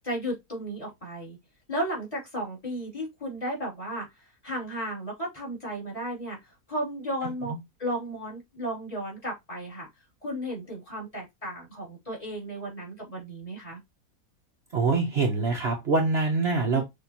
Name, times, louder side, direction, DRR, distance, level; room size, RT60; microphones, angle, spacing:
voice 1, 0.0-1.4 1.7-7.5 7.8-9.9 10.2-13.8 16.7-16.8, right 1 dB, 25° left, 2.9 m, -34 dB
voice 2, 14.7-16.8, right 3 dB, 50° right, 1.0 m, -24 dB
6.1 x 2.9 x 2.8 m
omnidirectional pair, 1.5 m